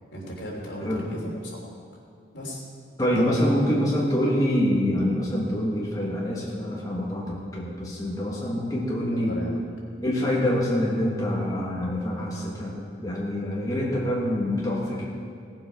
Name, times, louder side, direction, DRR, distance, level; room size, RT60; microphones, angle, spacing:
voice 1, 0.1-1.6 2.3-2.6 3.0-3.3 9.1-9.6, equal, 75° left, -3 dB, 3.1 m, -35 dB
voice 2, 3.0-9.4 10.0-12.8 13.0-15.1, equal, 20° left, -4 dB, 1.4 m, -25 dB
17.0 x 7.5 x 5.7 m, 2.3 s
head